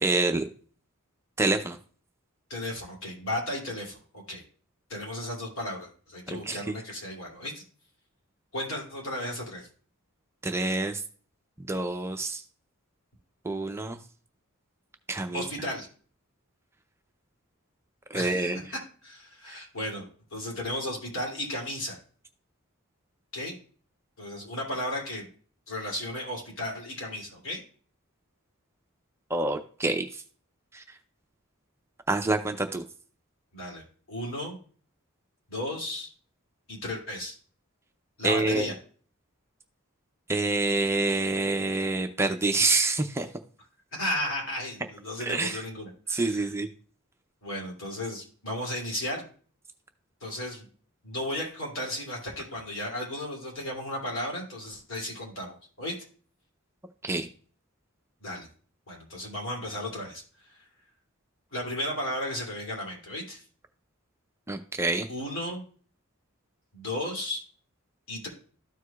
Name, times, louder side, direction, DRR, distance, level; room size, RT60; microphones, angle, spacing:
voice 1, 0.0-0.4 1.4-1.8 6.3-6.6 10.4-11.0 11.6-12.4 13.4-14.0 15.1-15.4 18.1-18.6 29.3-30.2 30.7-30.8 32.1-32.8 38.2-38.7 40.3-43.3 45.2-45.6 46.1-46.7 57.0-57.3 64.5-65.1, right 2 dB, 10° right, 6 dB, 0.5 m, -27 dB
voice 2, 2.5-4.4 4.9-7.6 8.5-9.7 15.3-15.9 18.1-18.5 19.0-22.0 23.3-23.6 24.2-25.3 25.7-27.6 33.5-33.8 34.1-34.6 35.5-36.1 36.7-37.3 38.2-38.7 43.9-46.5 47.4-49.3 50.2-50.6 51.0-55.9 58.2-58.5 58.9-60.6 61.5-63.4 65.1-65.6 66.7-67.4 68.1-68.3, left 1 dB, 65° left, 0 dB, 2.6 m, -34 dB
13.5 x 4.7 x 2.3 m, 0.43 s
head